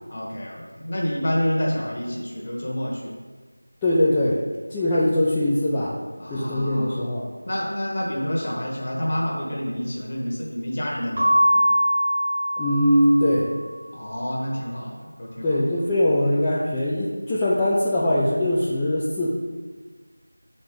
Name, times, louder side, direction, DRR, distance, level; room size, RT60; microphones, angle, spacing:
voice 1, 0.1-3.1 6.2-7.1 7.4-11.7 13.9-15.8, equal, 30° left, -3 dB, 1.1 m, -28 dB
voice 2, 3.8-4.4 4.7-6.0 6.3-7.3 12.6-13.5 15.4-19.3, left 1 dB, 5° left, -10 dB, 0.4 m, -21 dB
Keyboard (musical) / Bell, 11.1-13.6, equal, 30° right, 1.0 m, -22 dB
6.4 x 4.3 x 5.0 m, 1.4 s
figure-of-eight pair, 170°, 0 cm